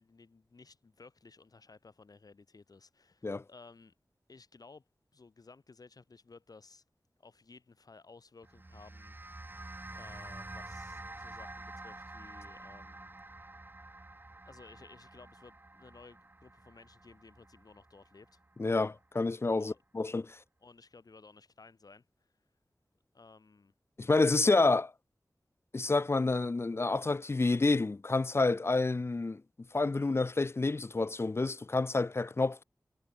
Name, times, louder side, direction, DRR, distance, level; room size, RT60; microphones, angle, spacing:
voice 1, 0.0-3.9 4.3-4.8 5.1-6.8 7.2-9.3 9.9-13.1 14.5-18.4 19.5-19.8 20.6-22.0 23.1-23.7, left 4 dB, 70° left, 5.3 m, -56 dB
sound 1, 8.4-19.0, right 2 dB, 30° right, 1.8 m, -48 dB
voice 2, 18.6-20.4 24.0-24.9 25.7-29.4 29.7-32.6, left 3 dB, 40° left, 0.5 m, -29 dB
wide cardioid pair, 70°, 7 cm